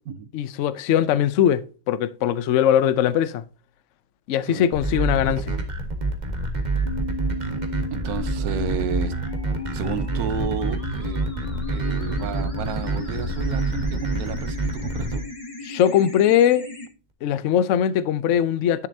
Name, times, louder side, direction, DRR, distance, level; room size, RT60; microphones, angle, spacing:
voice 1, 0.3-3.4 4.3-5.5 15.6-16.7 17.2-18.9, left 10 dB, 70° left, 0.7 m, -21 dB
sound 1, 4.7-15.2, right 2 dB, 25° right, 1.4 m, -27 dB
sound 2, 6.9-16.9, left 2 dB, 20° left, 1.4 m, -35 dB
voice 2, 7.9-9.1 9.7-11.2 11.7-15.2, right 7 dB, 65° right, 1.2 m, -31 dB
10.5 x 6.8 x 2.7 m
omnidirectional pair, 1.9 m